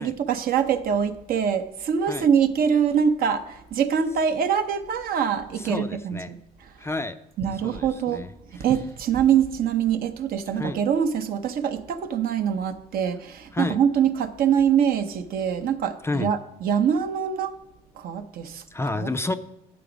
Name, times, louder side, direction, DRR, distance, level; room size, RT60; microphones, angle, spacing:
voice 1, 0.0-6.4 7.4-8.3 8.6-17.6 18.0-18.6 18.9-19.1, right 8 dB, 60° right, 0.7 m, -24 dB
voice 2, 5.6-6.3 6.8-7.2 7.6-8.7 10.5-10.8 13.5-13.8 16.0-16.3 18.7-19.3, left 2 dB, 15° left, 0.4 m, -30 dB
9.1 x 5.9 x 5.0 m
cardioid pair, 110°, 17 cm